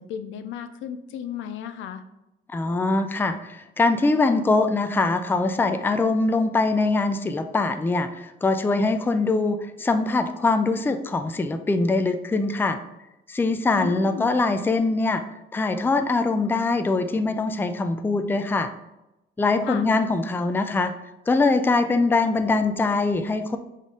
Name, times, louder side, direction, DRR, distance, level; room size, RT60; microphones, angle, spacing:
voice 1, 0.0-2.0 13.7-14.3 19.7-19.9, left 8 dB, 75° left, 9 dB, 0.4 m, -34 dB
voice 2, 2.5-12.8 13.3-15.2 15.5-18.7 19.4-21.0 21.3-23.6, left 3 dB, 10° left, 9 dB, 0.3 m, -23 dB
4.1 x 3.4 x 3.6 m, 0.93 s
cardioid pair, 90°, 20 cm